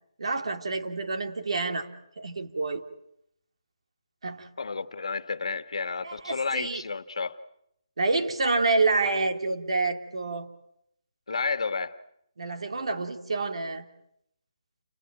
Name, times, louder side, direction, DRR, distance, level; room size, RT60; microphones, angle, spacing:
voice 1, 0.2-1.9 2.2-2.8 4.2-4.5 6.0-6.8 8.0-10.5 12.4-13.9, right 3 dB, 65° right, 2.9 m, -28 dB
voice 2, 4.6-7.4 11.3-12.0, left 4 dB, 65° left, 1.5 m, -31 dB
29.5 x 19.5 x 8.9 m
hypercardioid pair, 175°, 3 cm